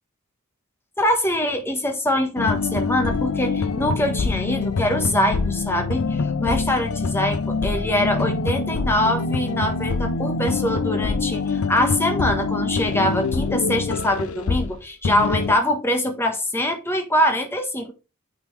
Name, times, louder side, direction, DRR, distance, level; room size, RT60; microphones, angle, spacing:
voice 1, 1.0-17.9, left 1 dB, 10° left, 1.2 m, -23 dB
sound 1, 2.4-14.8 15.0-15.5, left 4 dB, 70° left, 0.5 m, -25 dB
8.6 x 3.9 x 3.3 m
head